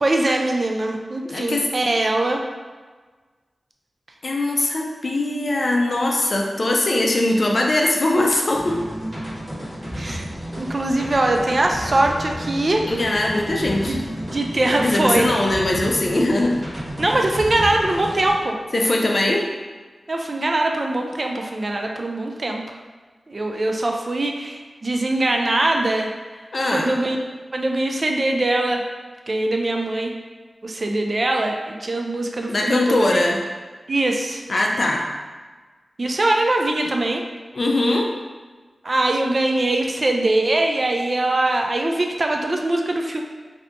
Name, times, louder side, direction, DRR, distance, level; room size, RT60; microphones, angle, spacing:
voice 1, 0.0-2.4 10.0-10.3 10.6-12.8 13.9-15.4 17.0-18.6 20.1-22.6 23.3-26.1 26.7-27.2 27.5-28.8 29.3-30.1 30.6-33.2 33.9-34.4 36.0-37.2 38.8-43.2, right 2 dB, 40° right, 2 dB, 0.3 m, -22 dB
voice 2, 1.2-1.7 4.2-8.8 12.8-14.0 14.8-16.6 18.7-19.5 26.5-26.9 32.5-33.4 34.5-35.1 37.5-38.1, left 1 dB, 50° left, 0 dB, 0.4 m, -21 dB
sound 1, 8.5-18.3, equal, 20° right, 1.3 m, -31 dB
2.7 x 2.6 x 3.3 m, 1.4 s
wide cardioid pair, 115°, 0 cm